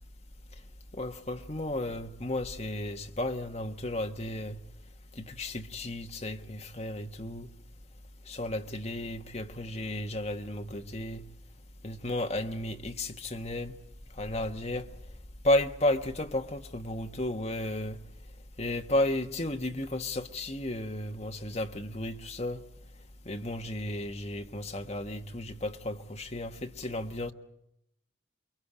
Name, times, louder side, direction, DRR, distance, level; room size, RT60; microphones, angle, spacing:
voice 1, 0.9-4.6 5.1-7.5 8.3-11.2 11.8-13.7 14.2-14.9 15.4-18.0 18.6-22.6 23.2-27.3, left 1 dB, 35° left, 1.3 m, -33 dB
28.5 x 22.5 x 5.0 m
head